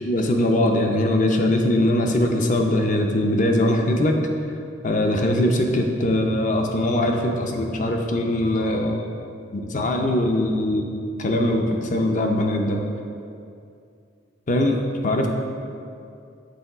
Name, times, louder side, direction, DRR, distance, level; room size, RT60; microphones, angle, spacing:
voice 1, 0.1-4.2 4.8-9.1 9.5-12.8 14.5-15.3, left 1 dB, 40° left, 3 dB, 0.5 m, -21 dB
6.8 x 3.8 x 4.8 m, 2.5 s
head